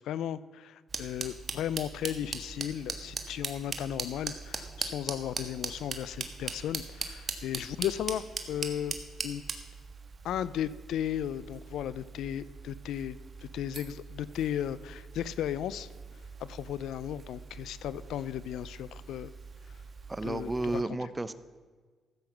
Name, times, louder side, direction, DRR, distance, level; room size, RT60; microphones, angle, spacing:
voice 1, 0.0-9.0 9.2-9.4 10.2-15.9 16.4-19.3 20.2-20.8, left 10 dB, 80° left, 17 dB, 0.4 m, -35 dB
sound 1, 0.9-20.8, right 4 dB, 40° right, 1.3 m, -41 dB
voice 2, 20.1-21.3, right 2 dB, 15° right, 14 dB, 0.6 m, -32 dB
14.0 x 7.8 x 5.8 m, 1.5 s
cardioid pair, 90°, 0 cm